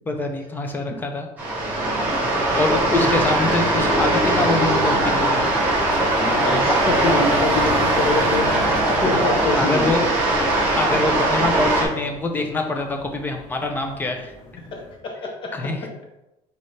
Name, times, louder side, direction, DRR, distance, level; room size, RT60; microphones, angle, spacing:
voice 1, 0.1-1.3 2.1-5.4 5.9-6.0 9.6-10.1 10.8-14.3 15.5-15.9, left 2 dB, 15° left, 3 dB, 0.5 m, -25 dB
sound 1, 1.4-11.9, right 1 dB, 10° right, 1.5 m, -20 dB
voice 2, 2.7-3.1 6.2-10.1 14.7-15.5, left 3 dB, 40° left, 1 dB, 1.0 m, -25 dB
sound 2, 3.1-15.0, left 1 dB, 80° left, 1.1 m, -36 dB
4.1 x 4.0 x 3.2 m, 0.93 s
cardioid pair, 165°, 13 cm